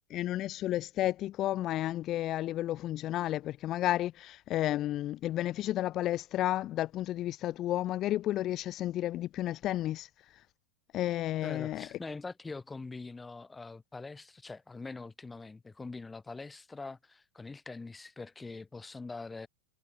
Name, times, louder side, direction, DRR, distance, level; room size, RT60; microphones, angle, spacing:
voice 1, 0.1-10.4 10.9-11.9, left 14 dB, 35° left, 0.4 m, -32 dB
voice 2, 11.4-19.5, left 3 dB, 10° left, 3.4 m, -43 dB
figure-of-eight pair, 90°, 0 cm